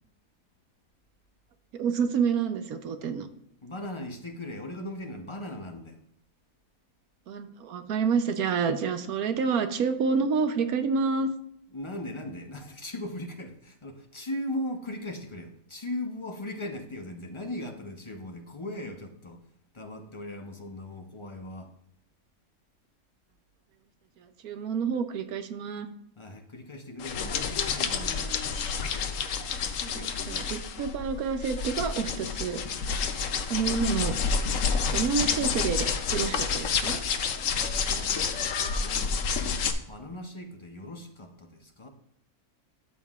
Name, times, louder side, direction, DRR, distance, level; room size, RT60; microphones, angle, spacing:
voice 1, 1.7-3.3 7.3-11.3 24.2-25.9 29.9-32.6 33.5-34.2 34.9-37.0, right 5 dB, 75° right, 8 dB, 1.2 m, -28 dB
voice 2, 3.6-6.0 11.7-19.4 19.7-21.7 26.2-28.3 37.6-38.5 38.8-39.2 39.9-41.9, left 1 dB, 35° left, 3 dB, 0.5 m, -38 dB
sound 1, 27.0-39.7, left 6 dB, 65° left, 1.0 m, -29 dB
12.5 x 7.5 x 2.4 m, 0.73 s
omnidirectional pair, 1.6 m